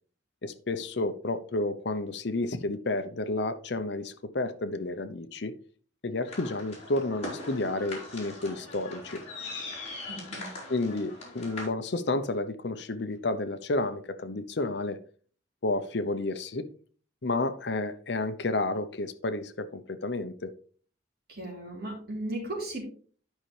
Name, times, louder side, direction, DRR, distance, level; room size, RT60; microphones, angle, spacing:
voice 1, 0.4-5.5 6.0-9.2 10.7-15.0 15.6-16.7 17.2-20.5, left 2 dB, 60° left, 10 dB, 0.7 m, -31 dB
sound 1, 6.3-11.7, left 2 dB, 35° left, 3.5 m, -41 dB
voice 2, 10.1-10.5 21.3-22.8, right 1 dB, 50° right, -2 dB, 3.4 m, -36 dB
12.0 x 5.6 x 3.3 m, 0.44 s
head